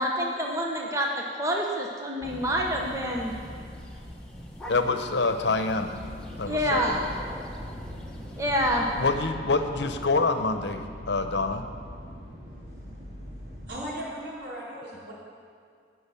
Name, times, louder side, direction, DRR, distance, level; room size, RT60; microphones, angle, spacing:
voice 1, 0.0-3.3 6.4-7.0 8.4-8.9, equal, 15° right, 0 dB, 0.9 m, -27 dB
sound 1, 2.2-9.2, equal, 5° left, 1.2 m, -42 dB
voice 2, 4.7-5.9 6.4-6.8 9.0-11.6, left 3 dB, 75° left, 7 dB, 0.9 m, -26 dB
sound 2, 5.9-13.7, equal, 30° right, 3.0 m, -42 dB
voice 3, 13.7-15.1, equal, 75° right, -6 dB, 4.1 m, -37 dB
17.5 x 6.2 x 7.0 m, 2.2 s
head